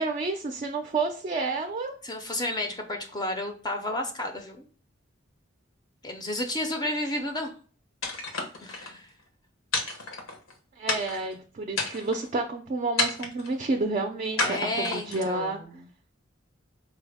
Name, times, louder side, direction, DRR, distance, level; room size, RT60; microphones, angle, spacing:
voice 1, 0.0-2.0 10.8-15.6, right 3 dB, 35° right, 4 dB, 0.4 m, -30 dB
voice 2, 2.0-4.7 6.0-7.5 8.6-9.1 14.4-15.9, left 1 dB, 20° left, 5 dB, 0.5 m, -32 dB
sound 1, 8.0-8.9 9.7-10.5 10.9-11.3 11.7-12.3 13.0-13.5 14.4-15.3, left 3 dB, 85° left, 1.0 m, -30 dB
4.5 x 2.0 x 3.4 m, 0.42 s
head